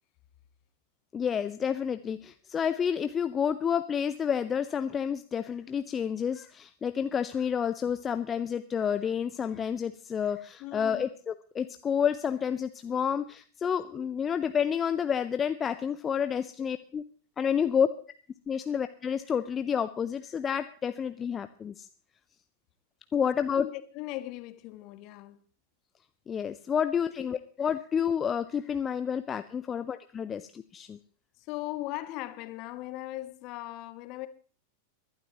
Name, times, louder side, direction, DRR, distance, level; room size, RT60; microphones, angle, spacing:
voice 1, 1.1-17.0 17.4-17.9 18.5-21.9 23.1-23.6 26.3-31.0, left 7 dB, 20° left, 0.6 m, -29 dB
voice 2, 10.6-11.1 13.9-14.0 23.6-25.4 27.2-27.3 31.4-34.3, left 16 dB, 40° left, 1.2 m, -39 dB
23.0 x 12.0 x 3.0 m
figure-of-eight pair, 90°, 0 cm